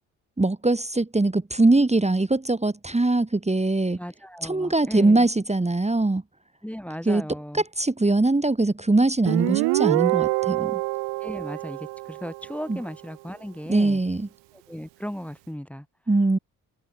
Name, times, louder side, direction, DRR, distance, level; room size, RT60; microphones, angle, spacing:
voice 1, 0.4-4.0 4.4-6.2 7.1-7.2 7.5-10.8 12.7-12.8 13.7-14.3 16.1-16.4, right 2 dB, 15° right, 2.1 m, -22 dB
voice 2, 4.0-5.3 6.6-7.6 11.2-14.0 14.5-15.9, equal, 5° left, 2.2 m, -36 dB
Guitar, 9.3-12.7, right 26 dB, 85° right, 1.3 m, -25 dB
hypercardioid pair, 50°, 42 cm